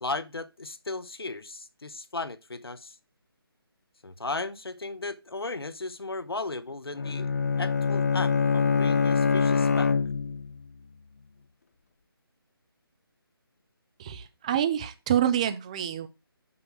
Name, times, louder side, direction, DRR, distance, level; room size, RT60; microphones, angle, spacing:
voice 1, 0.0-3.0 4.0-7.3 7.6-9.9, left 3 dB, 70° left, 1.0 m, -35 dB
Bowed string instrument, 7.0-10.6, left 5 dB, 40° left, 0.4 m, -24 dB
voice 2, 14.0-16.1, right 10 dB, 15° right, 0.5 m, -27 dB
6.6 x 5.6 x 6.1 m
figure-of-eight pair, 150°, 13 cm